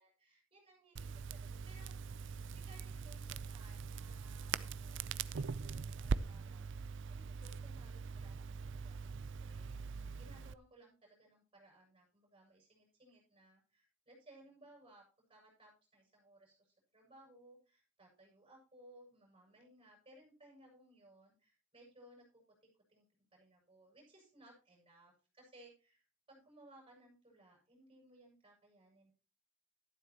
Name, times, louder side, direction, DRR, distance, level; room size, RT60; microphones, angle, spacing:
voice 1, 0.0-1.9 2.5-15.0 15.3-22.3 22.9-23.0 23.3-29.1, right 1 dB, 25° right, -1 dB, 7.1 m, -63 dB
Crackle, 1.0-10.5, right 5 dB, 60° right, 0.5 m, -42 dB
13.0 x 11.5 x 2.9 m, 0.35 s
head